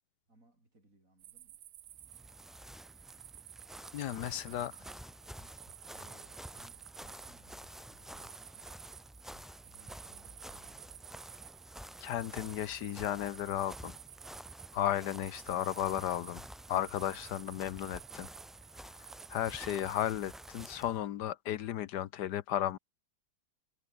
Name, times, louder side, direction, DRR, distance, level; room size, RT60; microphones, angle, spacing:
voice 1, 0.3-1.6 4.3-5.6 5.9-8.7 9.3-11.0, right 2 dB, 50° right, 6.8 m, -65 dB
sound 1, 1.2-20.6, right 13 dB, 75° right, 1.3 m, -54 dB
sound 2, 1.9-21.0, equal, ahead, 0.8 m, -50 dB
voice 2, 3.9-4.7 12.0-13.9 14.7-16.4 16.7-18.3 19.3-22.8, left 11 dB, 75° left, 1.3 m, -34 dB
omnidirectional pair, 1.9 m